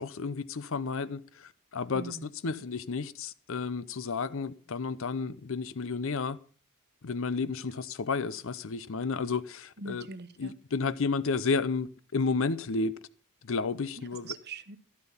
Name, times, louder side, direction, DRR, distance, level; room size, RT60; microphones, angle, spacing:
voice 1, 0.0-6.4 7.0-10.1 10.4-12.9 13.4-14.3, left 4 dB, 65° left, 0.6 m, -32 dB
voice 2, 1.9-2.6 9.8-10.5 14.0-14.8, right 3 dB, 50° right, 1.1 m, -43 dB
13.0 x 13.0 x 5.5 m
head